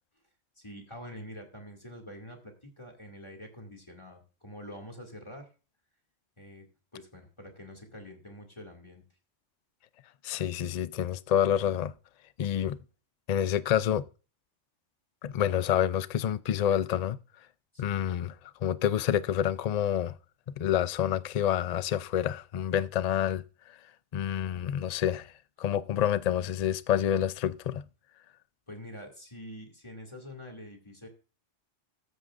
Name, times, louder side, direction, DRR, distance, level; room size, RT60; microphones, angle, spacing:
voice 1, 0.6-5.5 6.4-6.7 6.9-9.0 17.7-18.1 28.7-31.1, left 1 dB, 25° left, 2.5 m, -46 dB
voice 2, 10.2-11.9 12.4-12.8 13.3-14.0 15.2-17.2 17.8-18.3 18.6-20.2 20.6-23.4 24.1-25.3 25.6-27.8, left 10 dB, 55° left, 0.4 m, -28 dB
13.5 x 9.4 x 2.5 m
omnidirectional pair, 1.3 m